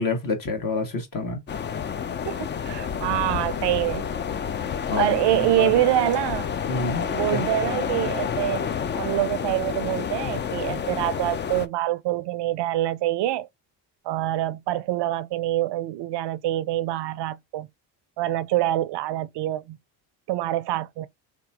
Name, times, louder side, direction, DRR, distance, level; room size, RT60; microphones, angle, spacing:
voice 1, 0.0-1.4 4.9-5.1 5.6-5.7 6.7-7.5, left 3 dB, 45° left, 1.6 m, -27 dB
sound 1, 1.5-11.7, left 7 dB, 25° left, 0.4 m, -29 dB
voice 2, 2.3-4.0 5.0-6.5 7.1-8.6 8.9-13.5 14.0-17.7 18.2-19.8 20.3-21.1, right 14 dB, 60° right, 0.5 m, -25 dB
3.5 x 2.9 x 2.8 m
supercardioid pair, 70°, 48 cm